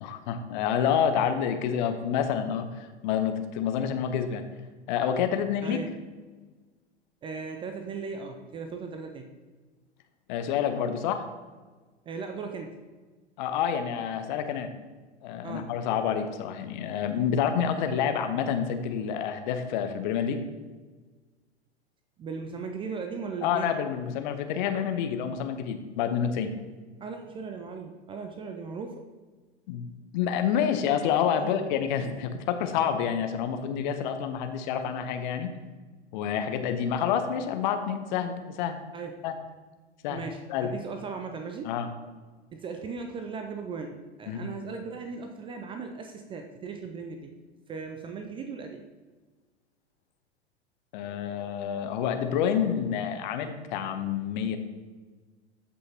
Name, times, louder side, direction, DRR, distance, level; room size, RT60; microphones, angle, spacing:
voice 1, 0.0-4.4 4.9-5.8 10.3-11.2 13.4-14.7 15.2-20.4 23.4-26.5 29.7-29.9 30.1-35.5 36.1-38.8 39.2-39.3 40.0-40.2 40.5-40.7 41.6-41.9 44.3-44.5 50.9-54.6, left 8 dB, 45° left, 8 dB, 0.9 m, -28 dB
voice 2, 5.6-6.0 7.2-9.3 12.1-12.8 15.4-15.7 22.2-23.7 27.0-29.0 31.4-31.6 38.9-39.2 40.1-41.7 42.5-47.3 47.7-48.9, right 5 dB, 15° right, 5 dB, 0.5 m, -37 dB
13.5 x 5.6 x 2.9 m, 1.4 s
figure-of-eight pair, 95°, 34 cm